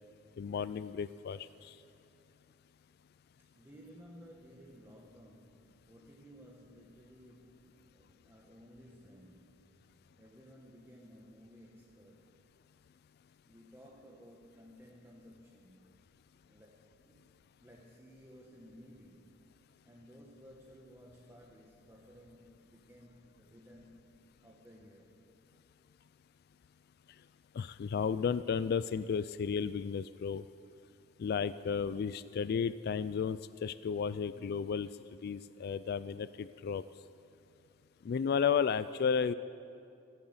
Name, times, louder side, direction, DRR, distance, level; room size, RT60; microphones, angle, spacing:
voice 1, 0.4-1.8 27.5-30.4 31.2-34.9 35.2-36.8 38.0-39.3, left 6 dB, 55° left, 15 dB, 0.3 m, -33 dB
voice 2, 3.3-9.9 10.2-12.4 13.5-16.0 16.5-17.3 17.6-19.4 19.8-24.2 24.4-25.2, equal, 10° right, -2 dB, 1.1 m, -57 dB
15.5 x 11.0 x 7.9 m, 2.6 s
head